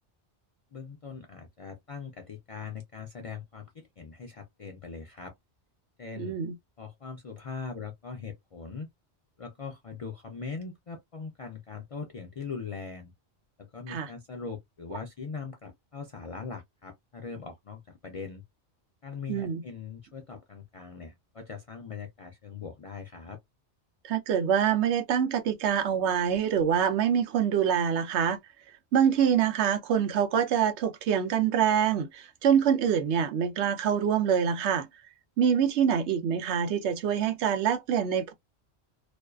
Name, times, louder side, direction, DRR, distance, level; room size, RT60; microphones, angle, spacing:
voice 1, 0.7-5.3 6.0-6.4 6.8-8.9 9.4-13.1 13.6-18.4 19.0-23.4, left 5 dB, 55° left, 0.4 m, -41 dB
voice 2, 6.2-6.5 13.9-14.1 19.3-19.6 24.0-28.4 28.9-34.9 35.4-38.3, right 8 dB, 90° right, 0.9 m, -25 dB
2.5 x 2.3 x 2.3 m
omnidirectional pair, 1.1 m